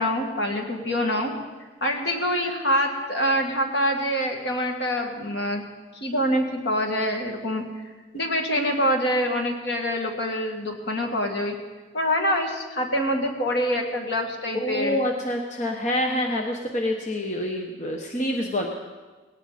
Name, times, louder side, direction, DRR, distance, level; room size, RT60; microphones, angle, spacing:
voice 1, 0.0-1.3 1.8-5.6 6.0-7.6 8.1-11.6 11.9-15.0, equal, 65° left, 2 dB, 2.4 m, -25 dB
voice 2, 14.5-18.7, left 1 dB, 40° left, 2 dB, 1.1 m, -27 dB
18.5 x 18.0 x 4.3 m, 1.3 s
head